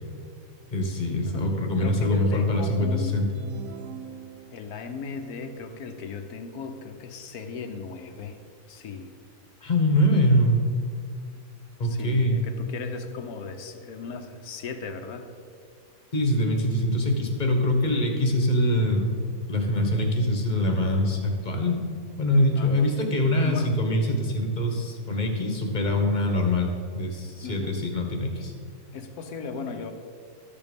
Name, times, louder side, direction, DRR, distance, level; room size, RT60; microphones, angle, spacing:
voice 1, 0.7-3.3 9.6-10.7 11.8-12.4 16.1-19.1 19.5-21.8 22.2-26.7 26.9-28.5, left 1 dB, 30° left, 2 dB, 1.3 m, -24 dB
voice 2, 1.8-3.2 4.5-8.4 8.7-9.1 11.8-15.3 22.5-22.9 23.4-23.7 24.1-24.2 27.4-27.8 28.9-29.9, left 4 dB, 60° left, 6 dB, 1.2 m, -37 dB
sound 1, 3.3-4.9, right 7 dB, 60° right, 0.8 m, -42 dB
13.0 x 6.9 x 5.2 m, 2.1 s
omnidirectional pair, 1.9 m